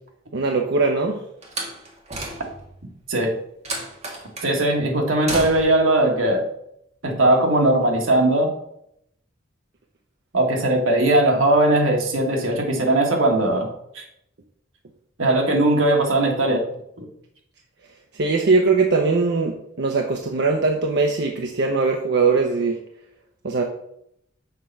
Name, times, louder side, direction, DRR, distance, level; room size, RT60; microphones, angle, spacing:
voice 1, 0.3-1.2 18.2-22.8 23.4-23.6, right 4 dB, 60° right, 2 dB, 0.7 m, -20 dB
Slam, 1.4-2.8 3.6-4.5 5.3-5.9, right 2 dB, 35° right, 1.6 m, -31 dB
voice 2, 4.4-6.5 7.0-8.5 10.3-13.7 13.9-14.0 15.2-16.6 17.0-17.1, right 1 dB, 80° right, 1 dB, 1.6 m, -19 dB
6.8 x 4.5 x 5.4 m, 0.75 s
head